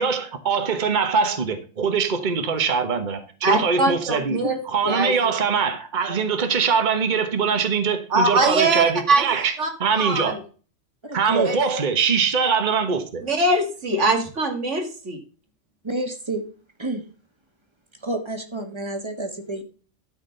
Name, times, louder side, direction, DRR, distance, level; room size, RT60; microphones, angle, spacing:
voice 1, 0.0-4.4 4.6-9.5 9.8-10.4 11.1-13.2, right 6 dB, 40° right, 1.3 m, -22 dB
voice 2, 3.4-4.6 4.8-5.3 8.1-9.3 9.6-9.7 10.0-10.4 11.4-11.6 13.2-15.2, right 2 dB, 65° right, 2.4 m, -22 dB
voice 3, 11.0-11.5 15.8-16.4 16.8-17.0 18.0-19.6, right 2 dB, 20° right, 1.6 m, -28 dB
12.5 x 4.4 x 6.6 m
omnidirectional pair, 1.3 m